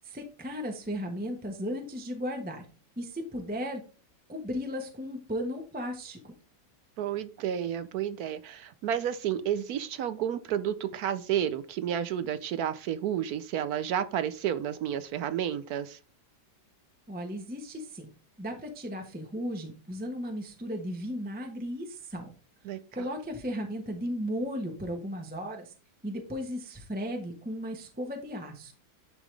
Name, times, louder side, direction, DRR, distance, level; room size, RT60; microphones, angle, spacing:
voice 1, 0.0-2.7 3.0-3.8 4.3-6.3 17.1-18.1 18.4-22.3 22.9-25.7 26.0-28.7, equal, 5° right, 3 dB, 0.8 m, -35 dB
voice 2, 7.0-16.0 22.7-22.8, right 10 dB, 70° right, 13 dB, 0.9 m, -31 dB
11.0 x 3.7 x 3.3 m, 0.37 s
omnidirectional pair, 2.1 m